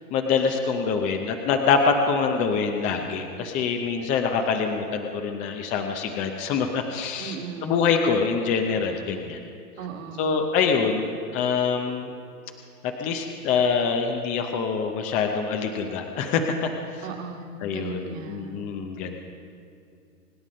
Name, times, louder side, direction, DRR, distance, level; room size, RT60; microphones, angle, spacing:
voice 1, 0.1-7.4 7.6-9.4 10.2-12.1 12.8-16.5 16.9-17.0 17.6-19.2, left 5 dB, 15° left, 4 dB, 0.6 m, -25 dB
voice 2, 7.2-7.9 9.8-10.6 17.0-18.6, right 5 dB, 55° right, 2 dB, 2.2 m, -37 dB
25.0 x 9.7 x 5.3 m, 2.4 s
hypercardioid pair, 140°, 47 cm